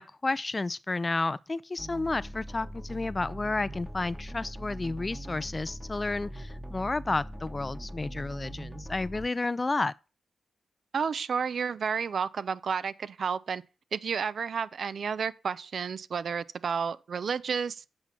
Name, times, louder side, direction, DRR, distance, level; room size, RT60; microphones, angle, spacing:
voice 1, 0.0-9.9, left 3 dB, 35° left, 0.4 m, -31 dB
sound 1, 1.8-9.3, right 1 dB, 15° right, 1.1 m, -41 dB
voice 2, 10.9-13.6 13.9-17.8, right 6 dB, 65° right, 0.4 m, -31 dB
7.7 x 4.3 x 5.9 m
supercardioid pair, 45°, 0 cm